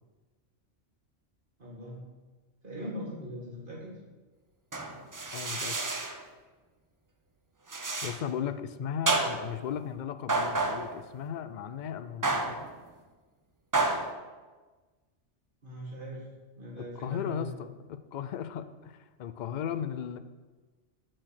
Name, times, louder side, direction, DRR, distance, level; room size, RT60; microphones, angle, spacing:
voice 1, 1.6-2.0 2.6-4.0 15.6-16.2 16.6-17.6, equal, 45° right, -6 dB, 2.1 m, -40 dB
sound 1, 4.7-6.2 7.7-8.2 9.1-9.6 10.3-11.0 12.2-12.7 13.7-14.1, right 3 dB, 30° right, 0.4 m, -30 dB
voice 2, 5.3-5.8 8.0-12.7 16.8-20.2, left 8 dB, 65° left, 11 dB, 0.4 m, -36 dB
6.4 x 6.2 x 6.4 m, 1.3 s
omnidirectional pair, 1.3 m